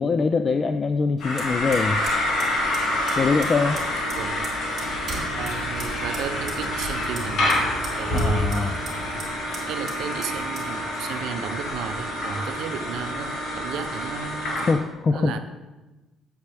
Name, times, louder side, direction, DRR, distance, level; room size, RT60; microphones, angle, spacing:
voice 1, 0.0-2.0 3.2-3.8 8.1-8.7 14.7-15.4, left 4 dB, 30° left, 9 dB, 0.3 m, -23 dB
sound 1, 1.2-14.7, left 1 dB, 65° left, 1.8 m, -27 dB
Fire, 1.2-13.0, right 2 dB, 35° right, 2.7 m, -40 dB
voice 2, 4.2-4.5 5.3-8.7 9.3-14.5 15.1-15.4, right 7 dB, 75° right, 9 dB, 0.6 m, -34 dB
8.0 x 7.7 x 3.4 m, 1.1 s
cardioid pair, 135°, 0 cm